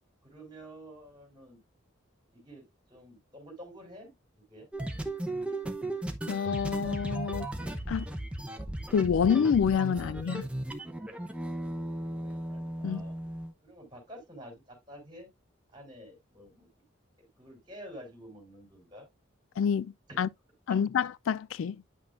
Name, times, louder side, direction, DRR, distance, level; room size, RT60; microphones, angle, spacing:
voice 1, 0.2-1.6 2.3-4.1 4.5-4.7 11.9-13.1 13.6-15.3 15.7-16.7 17.4-19.1 20.7-20.8, equal, 20° right, 3.8 m, -49 dB
sound 1, 4.7-13.5, right 1 dB, 5° right, 0.8 m, -36 dB
voice 2, 6.3-7.5 7.9-8.1 8.9-10.4 12.8-13.0 19.6-20.3 20.7-21.8, left 7 dB, 85° left, 0.3 m, -27 dB
9.1 x 6.0 x 2.5 m
head